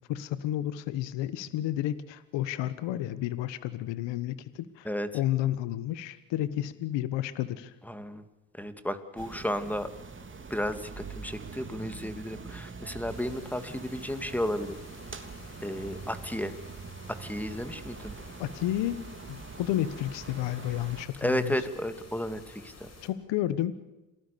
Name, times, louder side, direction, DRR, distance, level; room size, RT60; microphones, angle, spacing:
voice 1, 0.1-4.9 5.1-7.7 18.4-21.5 23.0-23.7, left 13 dB, 80° left, 14 dB, 1.4 m, -31 dB
voice 2, 7.9-8.2 8.5-9.9 10.5-14.8 15.6-16.5 17.2-18.1 21.2-22.9, equal, 5° left, 9 dB, 2.6 m, -33 dB
sound 1, 9.2-21.0, right 4 dB, 25° right, 3.2 m, -44 dB
sound 2, 13.1-23.1, left 3 dB, 35° left, 6.2 m, -51 dB
27.5 x 19.0 x 6.9 m, 1.0 s
supercardioid pair, 75°, 43 cm